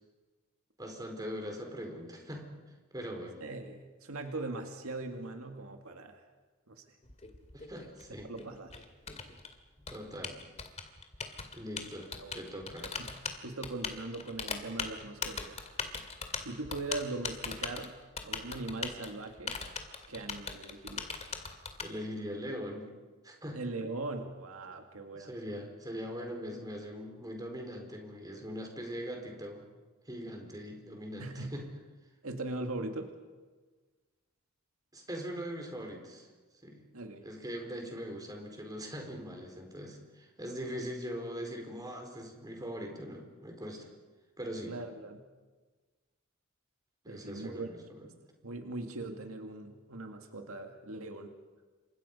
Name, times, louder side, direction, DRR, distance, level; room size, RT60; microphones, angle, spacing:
voice 1, 0.8-2.5 2.9-3.4 7.5-8.3 9.9-10.4 11.5-12.9 21.8-22.9 23.2-23.6 25.1-29.7 30.1-31.7 34.9-36.3 36.6-36.8 37.2-43.9 44.4-44.7 47.0-48.0, equal, 20° right, 3 dB, 4.5 m, -41 dB
voice 2, 3.4-6.2 6.7-6.8 8.2-8.8 12.2-12.3 12.8-13.1 13.4-15.7 16.4-17.9 18.2-19.6 20.1-21.1 23.5-25.3 31.2-31.6 32.2-33.1 36.9-37.3 44.7-45.2 47.1-47.7 48.0-48.2 48.4-51.3, right 2 dB, 75° right, 5 dB, 2.1 m, -40 dB
Typing, 7.0-21.9, left 5 dB, 30° left, 2.4 m, -40 dB
29.0 x 25.5 x 5.5 m, 1.3 s
head